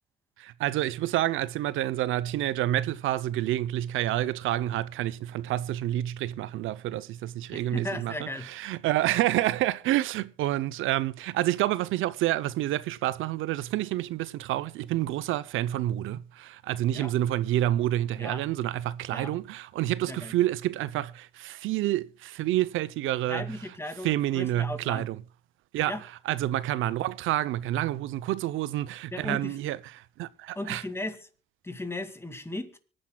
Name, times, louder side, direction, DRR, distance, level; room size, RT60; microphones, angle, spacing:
voice 1, 0.4-23.5 24.0-25.2 25.7-26.0 26.3-30.8, right 14 dB, 85° right, 0.6 m, -28 dB
voice 2, 7.5-8.5 16.9-17.1 18.2-18.4 19.1-19.3 20.1-20.3 23.3-25.1 25.9-26.0 29.1-29.6 30.6-31.2 31.6-32.8, left 1 dB, 10° left, 2.2 m, -36 dB
24.5 x 10.0 x 2.2 m
cardioid pair, 90°, 20 cm